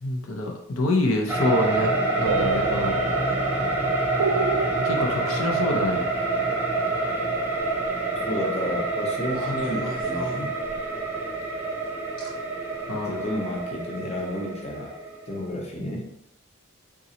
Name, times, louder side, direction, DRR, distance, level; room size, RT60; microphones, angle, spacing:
voice 1, 0.0-3.0 4.8-6.1 12.9-13.3, left 2 dB, 70° left, 0 dB, 0.6 m, -26 dB
sound 1, 1.3-15.4, right 2 dB, 10° right, 0.6 m, -27 dB
sound 2, 2.2-8.0, right 5 dB, 90° right, 0.3 m, -32 dB
sound 3, 7.9-8.0 9.3-11.0 12.2-12.3 13.1-13.3, equal, 45° left, 1.2 m, -38 dB
voice 2, 8.3-10.5 13.1-14.9 15.3-16.0, left 1 dB, 30° left, -1 dB, 0.7 m, -31 dB
4.1 x 3.7 x 2.8 m, 0.78 s
head